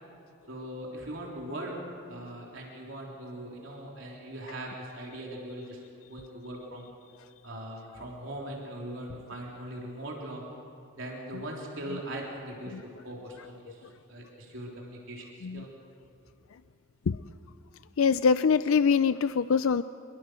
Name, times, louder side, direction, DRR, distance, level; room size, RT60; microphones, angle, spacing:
voice 1, 0.5-1.7 2.1-5.8 6.1-6.9 7.4-10.4 11.0-12.8 13.0-13.8 14.1-15.7, right 1 dB, 65° right, -2 dB, 3.6 m, -40 dB
voice 2, 18.0-19.8, left 6 dB, 85° left, 14 dB, 0.4 m, -24 dB
25.5 x 22.5 x 6.3 m, 2.7 s
head